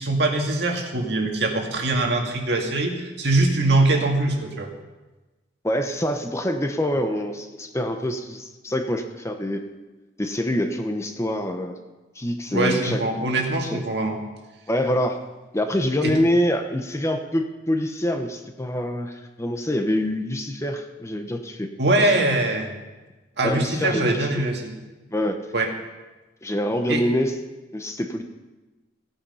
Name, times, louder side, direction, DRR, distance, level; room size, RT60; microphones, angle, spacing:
voice 1, 0.0-4.7 12.5-14.2 16.0-16.1 21.8-22.7 23.4-24.7 25.5-25.7 26.9-27.0, right 2 dB, 65° right, 2 dB, 2.0 m, -22 dB
voice 2, 5.6-9.6 10.2-11.7 12.1-13.0 13.6-13.8 14.7-15.2 15.5-21.7 22.0-22.2 23.4-24.3 25.1-25.4 26.4-27.4 27.7-28.2, equal, 15° left, 5 dB, 0.9 m, -25 dB
16.5 x 8.7 x 5.6 m, 1.1 s
head